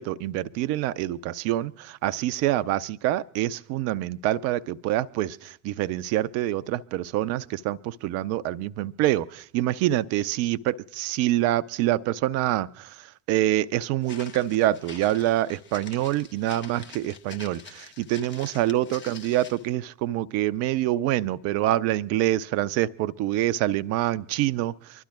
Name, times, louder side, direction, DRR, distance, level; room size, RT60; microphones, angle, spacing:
voice 1, 0.0-25.0, right 14 dB, 45° right, 16 dB, 0.5 m, -26 dB
Walk footsteps, 14.0-19.7, left 5 dB, 30° left, 1.3 m, -46 dB
25.0 x 11.5 x 2.5 m, 0.68 s
figure-of-eight pair, 65°, 36 cm